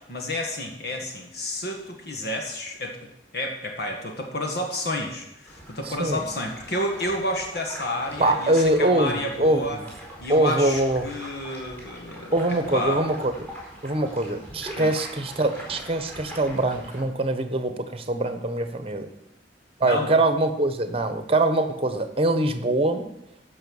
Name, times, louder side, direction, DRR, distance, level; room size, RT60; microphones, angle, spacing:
voice 1, 0.1-9.8 10.2-12.3 12.7-13.1 14.8-14.9 19.8-20.1, left 1 dB, 60° left, 2 dB, 1.8 m, -30 dB
sound 1, 5.5-17.0, equal, 10° left, 4.6 m, -42 dB
voice 2, 5.8-6.2 8.2-9.9 10.3-11.1 12.3-13.3 13.8-19.1 19.8-23.1, right 2 dB, 30° right, 9 dB, 1.2 m, -23 dB
14.5 x 5.8 x 7.2 m, 0.86 s
head